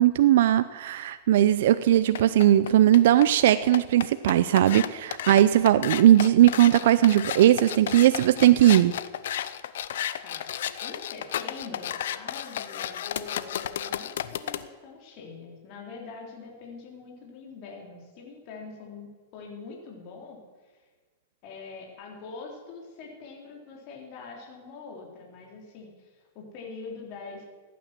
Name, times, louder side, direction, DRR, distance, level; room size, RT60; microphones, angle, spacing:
voice 1, 0.0-8.9, right 12 dB, 70° right, 13 dB, 0.5 m, -19 dB
sound 1, 1.9-14.6, left 11 dB, 75° left, 0.7 m, -33 dB
voice 2, 10.8-20.8 21.4-27.4, left 4 dB, 45° left, 0 dB, 3.6 m, -43 dB
15.5 x 9.3 x 7.6 m, 1.4 s
hypercardioid pair, 135°, 0 cm